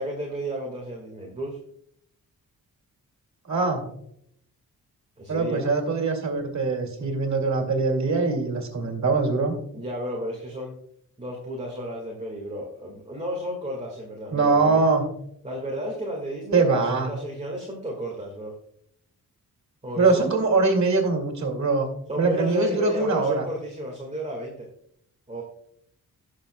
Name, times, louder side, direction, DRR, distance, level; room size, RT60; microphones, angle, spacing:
voice 1, 0.0-1.6 5.2-5.7 9.7-10.7 11.2-14.8 15.4-18.5 19.8-20.3 22.1-24.7 25.3-25.4, equal, 20° right, -1 dB, 1.8 m, -32 dB
voice 2, 3.4-3.8 5.3-9.5 14.3-15.0 16.5-17.1 19.9-21.9 22.2-23.4, right 3 dB, 50° right, 3 dB, 2.4 m, -22 dB
18.0 x 6.5 x 2.2 m, 0.71 s
wide cardioid pair, 125°, 36 cm